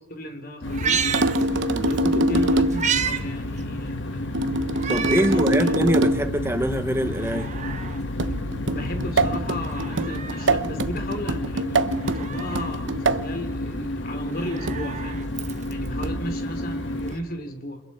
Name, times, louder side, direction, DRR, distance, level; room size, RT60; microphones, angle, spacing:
voice 1, 0.1-1.0 1.8-4.3 5.1-5.7 8.7-15.2 15.7-17.8, equal, 55° left, 5 dB, 3.4 m, -34 dB
sound 1, 0.6-17.2, left 1 dB, 90° left, 1.6 m, -31 dB
Meow, 0.7-2.0 2.4-3.2 3.6-3.7 4.7-5.4 5.9-6.0 7.0-8.0 9.6-10.5 11.9-12.7 14.2-15.9 17.1-17.2, right 7 dB, 40° right, 1.2 m, -30 dB
sound 2, 1.1-2.9 4.3-6.4 8.2-13.3 14.7-15.0 16.0-16.3, right 2 dB, 85° right, 1.0 m, -24 dB
voice 2, 4.9-7.5, right 1 dB, 15° right, 8 dB, 1.0 m, -24 dB
30.0 x 29.5 x 4.4 m, 0.96 s
head